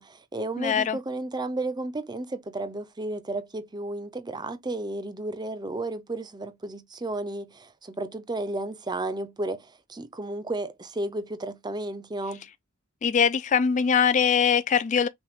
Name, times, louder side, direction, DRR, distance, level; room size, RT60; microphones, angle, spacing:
voice 1, 0.0-12.5, right 2 dB, 20° right, 0.6 m, -33 dB
voice 2, 0.6-1.0 13.0-15.1, left 7 dB, 35° left, 0.3 m, -22 dB
5.8 x 2.4 x 3.5 m
head